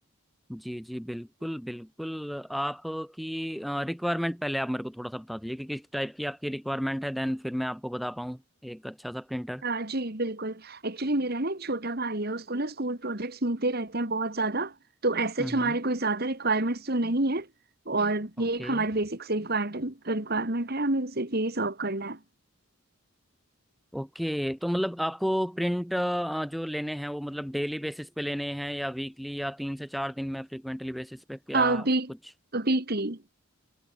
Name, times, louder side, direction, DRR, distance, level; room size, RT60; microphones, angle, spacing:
voice 1, 0.5-9.6 15.4-15.8 18.6-18.9 23.9-31.9, equal, ahead, 2.2 m, -32 dB
voice 2, 9.6-14.7 15.0-17.5 17.9-22.2 31.5-32.1 32.5-33.2, right 2 dB, 45° right, 2.2 m, -28 dB
head